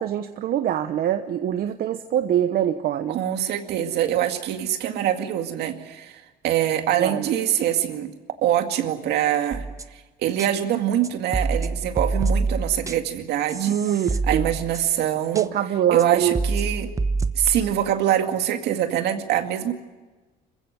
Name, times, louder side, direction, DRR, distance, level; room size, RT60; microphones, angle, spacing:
voice 1, 0.0-3.2 7.0-7.3 13.5-14.4 15.3-16.4, right 10 dB, 60° right, 9 dB, 1.0 m, -24 dB
voice 2, 3.1-8.1 8.4-9.6 9.9-13.8 14.3-15.5 15.9-16.9 17.4-19.7, right 11 dB, 80° right, 6 dB, 2.1 m, -24 dB
sound 1, 9.5-10.0 10.4-10.5 11.0-13.2 13.5-15.0 15.3-15.4 16.0-16.1 16.3-17.7, right 3 dB, 20° right, 0.9 m, -27 dB
26.0 x 15.5 x 9.3 m, 1.2 s
cardioid pair, 110°, 17 cm